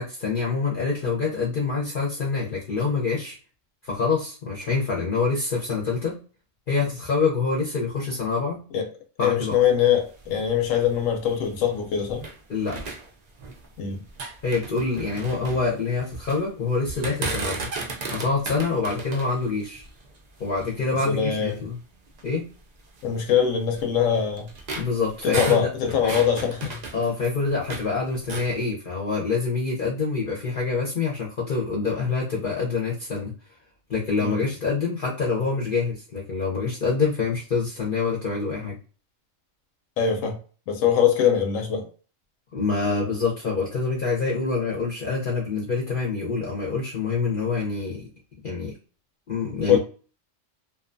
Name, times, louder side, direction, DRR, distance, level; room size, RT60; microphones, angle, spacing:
voice 1, 0.0-3.3 3.8-6.2 6.7-8.6 9.2-9.5 12.5-12.8 14.4-17.6 18.1-19.8 20.4-21.7 22.2-22.4 24.8-25.7 26.0-26.1 26.9-33.3 33.9-38.8 42.5-48.1 48.4-48.7 49.3-49.8, left 4 dB, 50° left, 0.7 m, -26 dB
voice 2, 9.2-12.3 13.8-14.0 21.0-21.6 23.0-24.5 25.2-26.8 34.2-34.4 40.0-40.4 40.7-41.9 49.7-49.8, left 8 dB, 85° left, 1.0 m, -22 dB
sound 1, 9.4-12.4 12.7-13.7 14.0-16.4 16.8-20.9 21.5-21.6 22.1-22.2 23.0-27.9 28.2-28.6, right 3 dB, 60° right, 0.4 m, -35 dB
2.6 x 2.2 x 2.5 m
omnidirectional pair, 1.3 m